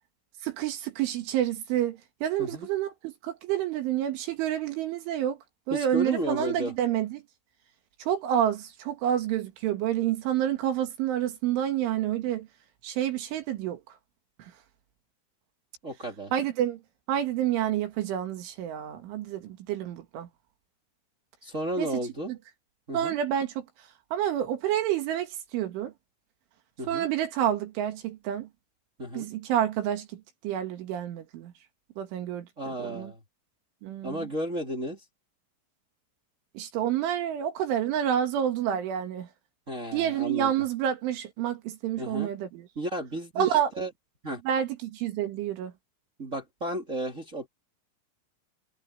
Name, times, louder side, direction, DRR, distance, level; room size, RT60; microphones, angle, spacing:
voice 1, 0.4-5.4 5.7-7.2 8.0-12.5 12.8-13.8 16.3-16.8 17.1-20.3 21.8-21.9 22.9-23.5 24.1-25.9 26.9-28.5 29.1-30.1 30.4-31.5 32.0-32.5 32.8-33.1 33.8-34.3 36.6-39.3 39.9-42.7 43.4-43.7 44.5-45.7, right 10 dB, 70° right, 4.3 m, -28 dB
voice 2, 5.7-6.7 15.8-16.3 21.4-22.3 22.9-23.1 26.8-27.1 29.0-29.3 32.6-33.2 34.0-35.0 39.7-40.6 42.0-42.3 42.7-43.9 44.2-44.4 46.2-47.5, right 1 dB, 30° right, 1.4 m, -33 dB
omnidirectional pair, 5.9 m